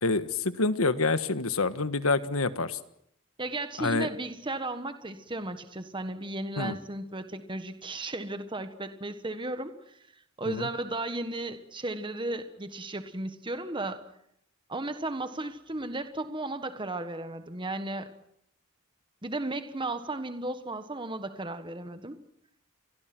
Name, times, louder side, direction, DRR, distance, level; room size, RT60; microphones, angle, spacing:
voice 1, 0.0-2.8 3.8-4.1 6.6-6.7 10.4-10.7, left 3 dB, 90° left, 11 dB, 1.5 m, -27 dB
voice 2, 3.4-10.0 10.4-14.0 14.7-18.1 19.2-22.1, right 2 dB, 25° right, 9 dB, 1.4 m, -35 dB
29.0 x 23.0 x 6.2 m, 0.74 s
head